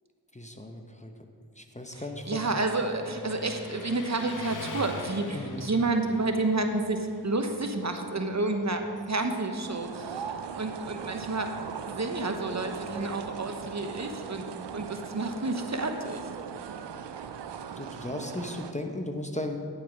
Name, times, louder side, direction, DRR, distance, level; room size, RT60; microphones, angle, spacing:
voice 1, 0.3-1.1 1.6-2.4 5.3-5.7 17.8-19.6, left 1 dB, 15° left, 4 dB, 0.9 m, -36 dB
Motorcycle, 1.9-14.6, left 2 dB, 45° left, 1.2 m, -46 dB
voice 2, 1.9-10.3 10.6-11.5 11.8-16.2, right 2 dB, 40° right, 5 dB, 1.0 m, -30 dB
sound 1, 9.6-18.7, right 7 dB, 75° right, 0.6 m, -39 dB
10.0 x 7.7 x 5.1 m, 2.3 s
cardioid pair, 55°, 42 cm